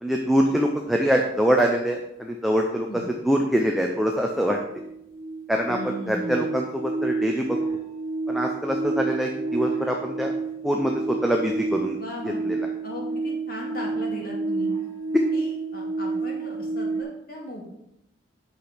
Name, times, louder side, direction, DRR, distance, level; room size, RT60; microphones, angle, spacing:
voice 1, 0.0-4.6 5.5-7.6 8.3-10.3 10.6-12.0 12.2-12.6 15.1-15.2, equal, ahead, 1 dB, 0.6 m, -24 dB
sound 1, 3.4-3.5 3.8-17.0, right 3 dB, 45° right, 2.6 m, -30 dB
voice 2, 5.7-6.5 12.0-12.4 12.8-14.7 15.3-17.6, equal, 50° left, -1 dB, 2.2 m, -37 dB
8.4 x 6.1 x 5.0 m, 0.82 s
head